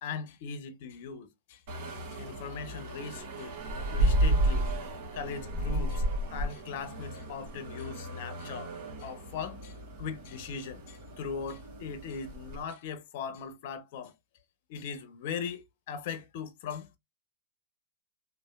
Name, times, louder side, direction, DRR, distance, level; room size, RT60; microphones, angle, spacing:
voice 1, 0.0-1.6 2.1-3.6 3.9-4.7 5.1-8.7 9.0-14.1 14.7-17.0, left 6 dB, 60° left, 0.6 m, -39 dB
sound 1, 1.7-12.6, right 1 dB, 55° right, 1.4 m, -33 dB
3.1 x 2.5 x 2.3 m
hypercardioid pair, 115°, 0 cm